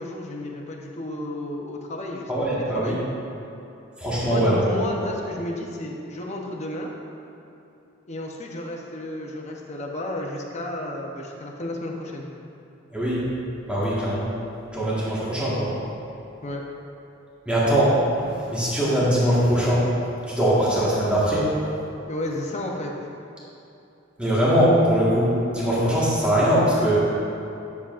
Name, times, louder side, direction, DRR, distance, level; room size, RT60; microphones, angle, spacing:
voice 1, 0.0-3.0 4.2-6.9 8.1-12.3 16.4-16.6 22.1-22.9, left 1 dB, 35° left, 0 dB, 0.8 m, -32 dB
voice 2, 2.3-2.9 4.0-4.7 5.0-5.1 12.9-13.2 13.7-14.3 14.7-15.7 17.4-19.9 20.3-21.5 24.2-27.1, equal, 5° right, -9 dB, 1.5 m, -21 dB
9.9 x 6.9 x 2.5 m, 2.9 s
head